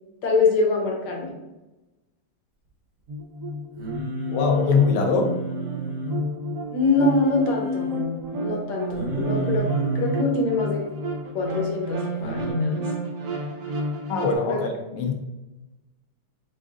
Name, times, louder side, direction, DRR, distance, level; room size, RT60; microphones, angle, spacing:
voice 1, 0.2-1.3 6.7-7.9 8.4-9.7 9.9-10.8 11.3-12.8 14.5-14.6, left 3 dB, 60° left, -1 dB, 1.4 m, -24 dB
sound 1, 3.1-14.3, right 1 dB, 65° right, 0.8 m, -31 dB
Singing, 3.8-6.2 6.8-8.0 8.9-10.2 12.2-12.5, right 1 dB, 80° right, 2.1 m, -30 dB
voice 2, 4.3-5.4 14.1-15.1, left 5 dB, 85° left, 3 dB, 1.6 m, -22 dB
7.3 x 2.5 x 2.4 m, 1.0 s
omnidirectional pair, 2.3 m